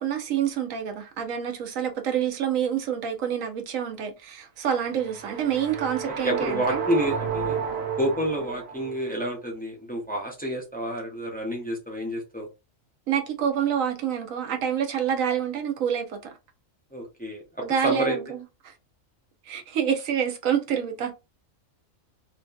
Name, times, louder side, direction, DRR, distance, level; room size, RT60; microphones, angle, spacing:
voice 1, 0.0-6.8 13.1-16.3 17.6-18.7 19.5-21.1, right 8 dB, 85° right, 1.1 m, -27 dB
sound 1, 4.8-9.1, right 6 dB, 60° right, 0.8 m, -32 dB
voice 2, 6.2-7.6 8.0-12.5 16.9-17.4 17.8-18.2, right 1 dB, 10° left, 0.5 m, -29 dB
2.8 x 2.6 x 2.3 m
omnidirectional pair, 1.4 m